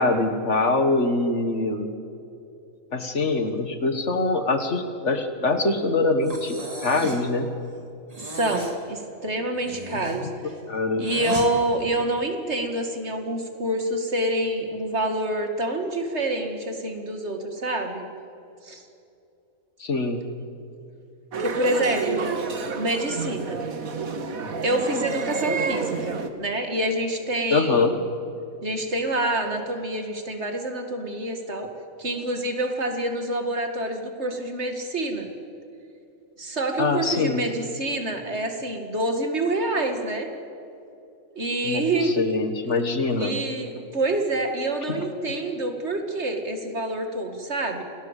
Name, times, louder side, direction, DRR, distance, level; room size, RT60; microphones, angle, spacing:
voice 1, 0.0-1.9 2.9-7.5 9.9-10.3 10.7-11.1 19.8-20.3 27.5-27.9 36.8-37.4 41.6-43.4 44.9-45.4, left 3 dB, 55° left, 8 dB, 2.0 m, -24 dB
Breathing, 6.2-7.3 8.1-8.8 9.5-11.5, right 2 dB, 25° right, 2.3 m, -35 dB
voice 2, 8.2-10.3 11.0-18.0 18.6-18.8 21.4-22.3 22.7-23.6 24.6-28.0 28.6-31.7 32.0-35.3 36.4-40.3 41.3-42.2 43.2-47.8, right 1 dB, 55° right, 5 dB, 2.5 m, -27 dB
sound 1, 21.3-26.3, right 4 dB, 85° right, 2.0 m, -29 dB
28.5 x 18.5 x 8.3 m, 2.7 s
omnidirectional pair, 1.4 m